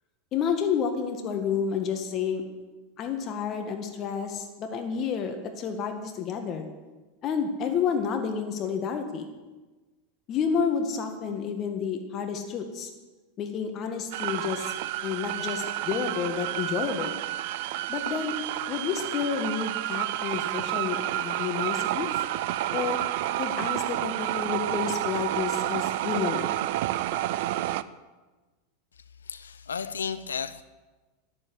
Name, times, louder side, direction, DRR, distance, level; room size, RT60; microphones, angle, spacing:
voice 1, 0.3-2.4 3.0-6.7 7.2-9.3 10.3-12.9 13.4-14.7 15.0-17.2 17.9-18.3 18.7-22.1 22.7-23.0 23.4-26.5, left 6 dB, 40° left, 5 dB, 1.7 m, -30 dB
sound 1, 14.1-27.8, right 14 dB, 60° right, 0.5 m, -30 dB
voice 2, 29.2-30.6, left 6 dB, 85° left, 13 dB, 0.8 m, -33 dB
12.0 x 11.0 x 7.9 m, 1.2 s
hypercardioid pair, 90°, 0 cm